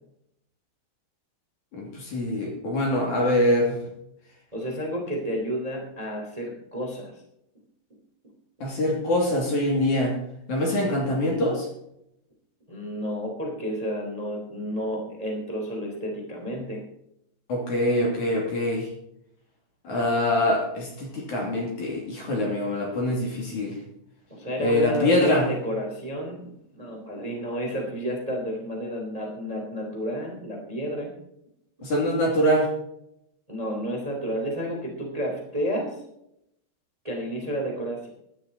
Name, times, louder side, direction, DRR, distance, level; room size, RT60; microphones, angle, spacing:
voice 1, 1.7-3.8 8.6-10.2 10.5-11.7 17.5-18.9 19.8-23.8 24.6-25.5 31.8-32.7, left 1 dB, 50° left, -1 dB, 3.7 m, -24 dB
voice 2, 4.5-7.1 12.7-16.8 24.3-26.4 26.7-31.1 33.5-36.0 37.0-38.1, equal, 10° right, 0 dB, 2.3 m, -31 dB
15.0 x 11.5 x 4.2 m, 0.78 s
omnidirectional pair, 5.1 m